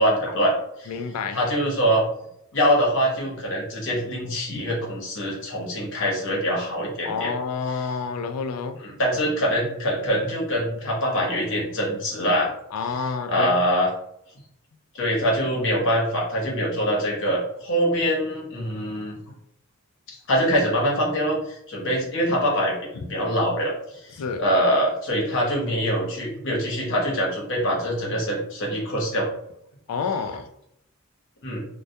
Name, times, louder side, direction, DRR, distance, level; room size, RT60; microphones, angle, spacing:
voice 1, 0.0-0.9 1.3-2.0 2.5-7.3 8.8-12.5 13.3-13.9 14.9-19.2 20.3-29.3 31.4-31.6, equal, 60° left, -2 dB, 0.8 m, -24 dB
voice 2, 0.9-1.4 4.5-4.6 7.0-8.8 12.7-13.6 23.0-23.1 24.2-24.4 29.9-30.5, left 5 dB, 85° left, 7 dB, 0.3 m, -29 dB
2.2 x 2.1 x 2.7 m, 0.77 s
head